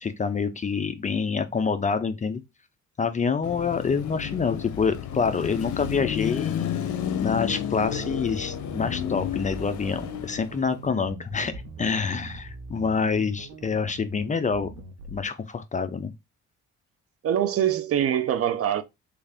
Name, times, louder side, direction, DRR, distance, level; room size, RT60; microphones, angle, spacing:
voice 1, 0.0-2.4 3.0-6.7 7.2-14.8 15.1-16.1, left 5 dB, 25° left, 0.4 m, -27 dB
Car passing by / Traffic noise roadway noise / Engine, 3.4-10.8, left 9 dB, 75° left, 0.6 m, -31 dB
sound 1, 7.8-15.2, right 3 dB, 75° right, 0.8 m, -42 dB
voice 2, 17.2-18.8, right 10 dB, 50° right, 0.5 m, -24 dB
3.3 x 2.4 x 3.4 m
cardioid pair, 90°, 30 cm